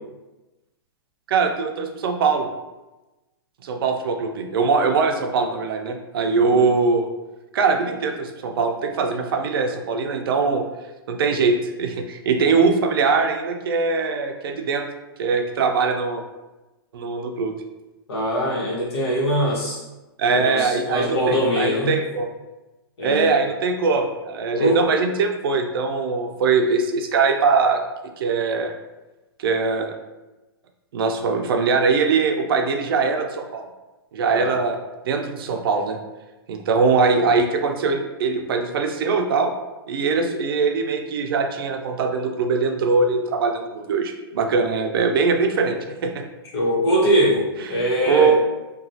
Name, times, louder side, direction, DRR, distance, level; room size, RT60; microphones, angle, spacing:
voice 1, 1.3-2.5 3.6-7.1 7.5-10.6 11.1-14.8 15.2-16.2 16.9-17.6 20.2-22.3 23.0-27.8 28.2-28.7 29.4-29.9 30.9-33.6 34.1-34.8 35.0-36.0 36.5-39.5 39.9-46.2 47.7-48.4, right 4 dB, 65° right, 4 dB, 0.4 m, -21 dB
voice 2, 18.1-19.8 20.3-22.0 23.0-23.3 24.6-24.8 34.3-34.5 46.5-47.4 47.7-48.3, equal, 80° left, -5 dB, 1.2 m, -22 dB
2.9 x 2.3 x 2.7 m, 1.1 s
hypercardioid pair, 155°, 13 cm